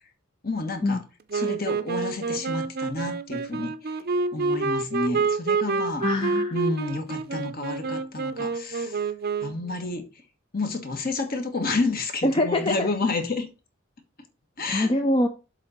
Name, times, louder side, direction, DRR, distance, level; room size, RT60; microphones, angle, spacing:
voice 1, 0.4-1.0 1.3-4.0 4.3-6.0 6.5-9.0 9.4-10.1 10.5-13.5 14.6-14.9, left 3 dB, 45° left, 1.4 m, -30 dB
Wind instrument woodwind instrument, 1.3-9.7, right 4 dB, 45° right, 0.6 m, -28 dB
voice 2, 6.0-6.6 12.2-12.9 14.7-15.3, left 1 dB, 25° left, 0.6 m, -24 dB
7.4 x 3.8 x 6.5 m
head